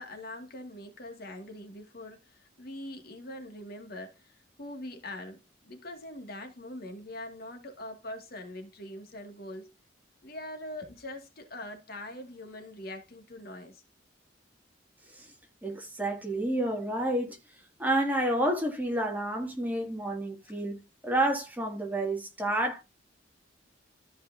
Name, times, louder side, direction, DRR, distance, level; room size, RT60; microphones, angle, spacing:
voice 1, 0.0-9.7 10.2-13.8, left 1 dB, 50° left, 2.2 m, -43 dB
voice 2, 15.6-17.4 17.8-20.8 21.0-22.8, right 1 dB, 10° right, 2.4 m, -29 dB
14.0 x 4.9 x 2.7 m
head